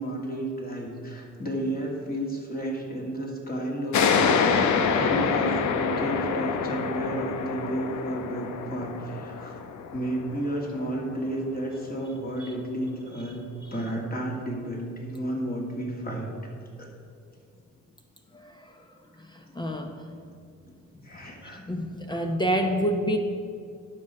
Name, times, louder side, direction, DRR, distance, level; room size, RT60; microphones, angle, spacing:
voice 1, 0.0-9.6 9.9-13.4 13.7-16.3 16.8-16.9 21.0-21.6, right 1 dB, 30° left, -1 dB, 2.5 m, -32 dB
sound 1, 3.9-11.1, left 6 dB, 70° left, 0.8 m, -26 dB
voice 2, 18.3-18.8 19.2-20.0 21.2-23.2, equal, 15° left, 3 dB, 0.9 m, -28 dB
10.5 x 6.2 x 5.9 m, 2.3 s
cardioid pair, 90°, 30 cm